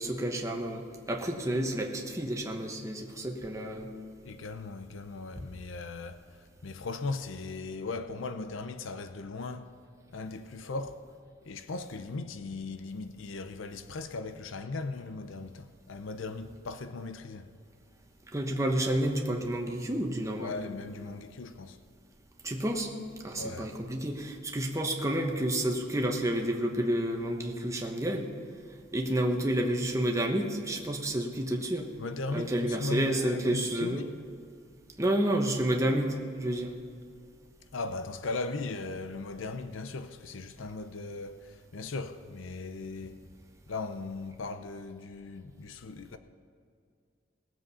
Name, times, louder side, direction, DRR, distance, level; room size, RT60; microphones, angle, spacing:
voice 1, 0.0-3.9 18.3-20.6 22.4-22.9 23.2-28.3 28.9-31.9 32.3-34.0 35.0-36.7, right 1 dB, 15° right, 1.2 m, -30 dB
voice 2, 4.2-9.7 10.1-11.0 11.4-17.5 20.4-21.8 23.3-23.7 32.0-34.2 37.7-43.2 43.7-46.2, left 3 dB, 80° left, 0.6 m, -38 dB
19.0 x 7.7 x 5.5 m
head